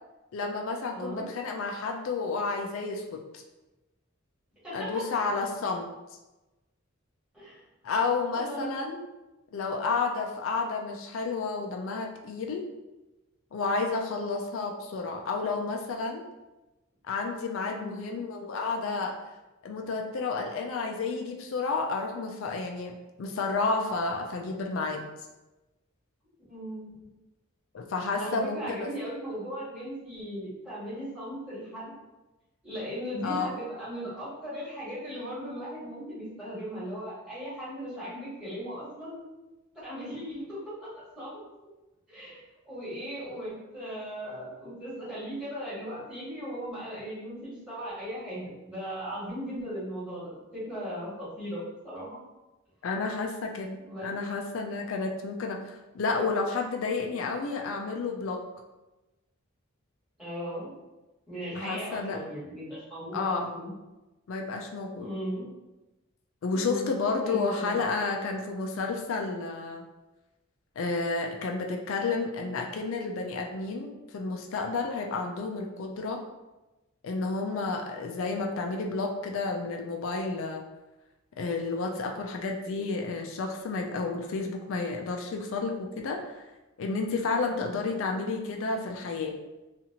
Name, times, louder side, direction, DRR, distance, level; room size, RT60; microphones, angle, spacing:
voice 1, 0.3-3.4 4.7-5.9 7.8-9.0 9.5-12.6 13.5-16.2 17.1-19.2 19.6-25.1 27.7-28.9 33.2-33.5 52.8-58.4 61.6-62.2 63.1-63.5 64.3-65.1 66.4-69.8 70.8-76.2 77.0-80.6 81.4-86.4 86.8-89.4, left 4 dB, 70° left, 2 dB, 0.4 m, -31 dB
voice 2, 0.9-1.3 4.6-5.0 7.3-7.6 8.3-8.8 17.7-18.0 26.5-26.9 28.2-31.9 32.6-39.2 39.7-40.9 41.2-41.4 42.1-52.2 53.8-54.1 60.2-60.7 61.3-63.7 65.0-65.5 66.5-66.9 67.2-67.8 87.5-87.8, equal, 5° right, -11 dB, 1.4 m, -37 dB
2.8 x 2.4 x 2.8 m, 1.1 s
head